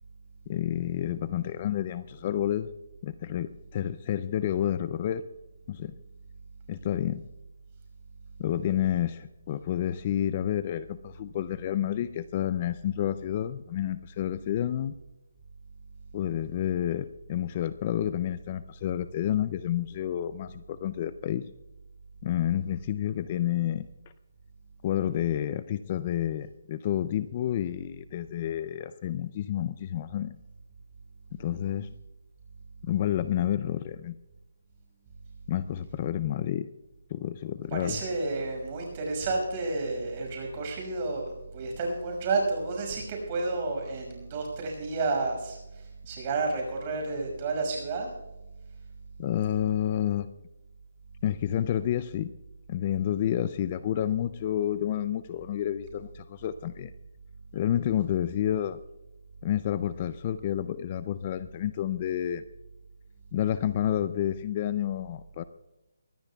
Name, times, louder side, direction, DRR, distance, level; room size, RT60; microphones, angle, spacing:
voice 1, 0.5-2.7 3.0-5.2 5.7-6.0 6.7-7.2 8.4-15.0 16.1-21.5 22.2-23.9 24.8-30.4 31.3-31.9 32.8-34.2 35.5-36.7 37.1-38.0 49.2-50.3 51.2-52.3 52.7-56.9 57.5-58.8 59.4-62.4 63.3-65.4, left 11 dB, 30° left, 14 dB, 0.4 m, -29 dB
voice 2, 37.7-48.1, right 3 dB, 30° right, 1 dB, 5.8 m, -31 dB
23.0 x 17.0 x 2.3 m, 1.0 s
hypercardioid pair, 165°, 0 cm